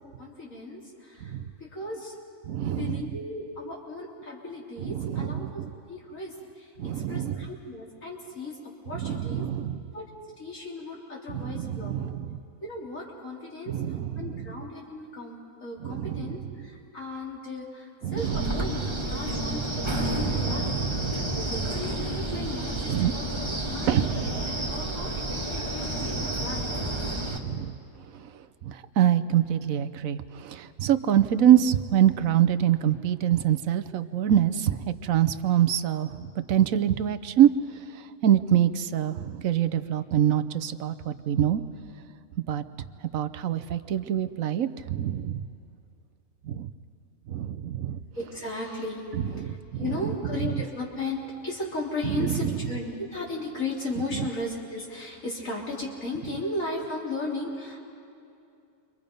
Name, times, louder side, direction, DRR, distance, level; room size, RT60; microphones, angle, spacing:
voice 1, 0.0-2.1 2.8-5.5 5.9-8.6 8.8-9.4 9.9-10.0 10.4-12.0 12.6-20.6 21.4-23.3 23.7-23.9 24.6-26.9 48.2-57.8, left 2 dB, 55° left, -3 dB, 3.8 m, -36 dB
voice 2, 2.5-3.0 4.8-5.7 6.8-7.5 9.0-9.8 11.3-12.4 13.7-14.5 15.8-16.3 18.0-18.5 20.2-21.2 22.9-23.1 23.9-24.7 27.4-27.7 28.6-36.1 36.5-37.5 38.2-41.6 42.5-42.6 43.1-45.4 46.5-46.7 47.3-48.0 49.3-50.1 50.4-50.5 52.0-52.6, right 10 dB, 65° right, 10 dB, 1.1 m, -25 dB
Wind, 18.2-27.4, right 1 dB, 15° right, 1.8 m, -30 dB
29.0 x 24.5 x 5.3 m, 2.5 s
omnidirectional pair, 1.6 m